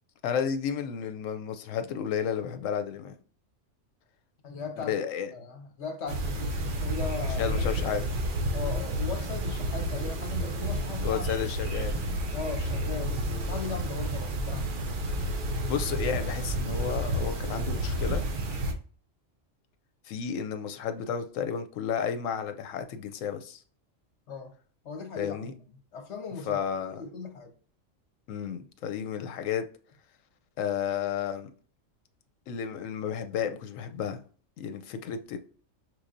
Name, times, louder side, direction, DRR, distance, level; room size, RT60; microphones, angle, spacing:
voice 1, 0.2-3.1 4.8-5.3 7.4-8.1 11.0-12.0 15.7-18.2 20.1-23.6 25.2-25.5 26.5-27.0 28.3-29.6 30.6-31.5 32.5-34.2 34.6-35.4, left 8 dB, 80° left, 1.0 m, -32 dB
voice 2, 4.4-4.9 5.3-7.8 8.5-11.3 12.3-14.7 24.3-24.5 24.8-25.6 25.9-27.5, left 5 dB, 60° left, 1.3 m, -38 dB
sound 1, 6.1-18.7, right 1 dB, 50° right, 0.7 m, -30 dB
6.0 x 3.1 x 2.6 m
omnidirectional pair, 1.3 m